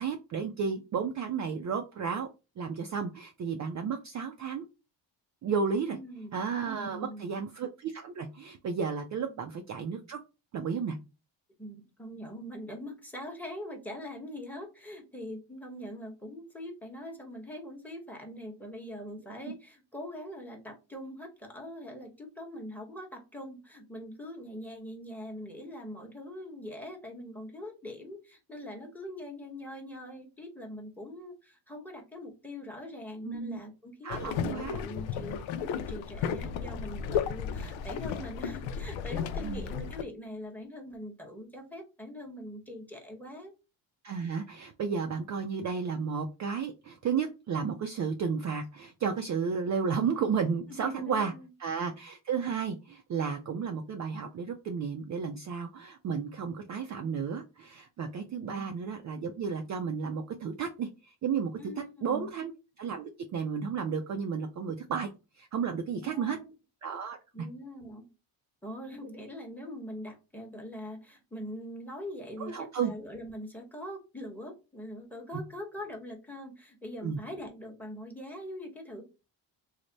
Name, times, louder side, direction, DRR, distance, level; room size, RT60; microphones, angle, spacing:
voice 1, 0.0-2.3 2.6-4.7 5.4-6.0 6.3-10.2 10.5-11.0 33.2-33.6 34.0-34.8 39.4-39.6 44.0-51.3 51.6-61.5 62.0-62.5 62.8-65.1 65.4-66.4 66.8-67.2 72.5-72.9 77.0-77.2, right 6 dB, 40° right, 4 dB, 0.4 m, -33 dB
voice 2, 5.9-6.3 6.7-7.3 9.2-9.3 11.6-43.5 50.7-51.5 51.8-51.9 58.5-58.6 61.6-62.3 65.9-66.5 67.3-68.1 68.6-79.0, left 1 dB, 5° left, 3 dB, 1.0 m, -43 dB
sound 1, 34.1-40.0, left 7 dB, 90° left, 0.6 m, -34 dB
3.2 x 2.1 x 3.9 m, 0.29 s
cardioid pair, 125°, 45 cm